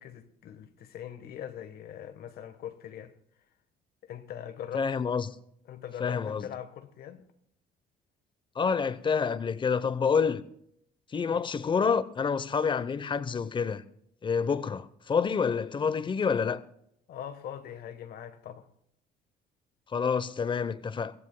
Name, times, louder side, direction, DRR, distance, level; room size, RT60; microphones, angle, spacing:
voice 1, 0.0-3.1 4.0-4.9 5.7-7.3 11.3-11.5 17.1-18.7, left 9 dB, 65° left, 1.3 m, -42 dB
voice 2, 4.7-5.3 6.0-6.5 8.6-10.4 11.1-13.8 14.2-16.6 19.9-21.1, left 6 dB, 30° left, 0.8 m, -28 dB
23.5 x 16.0 x 2.2 m
cardioid pair, 110°, 17 cm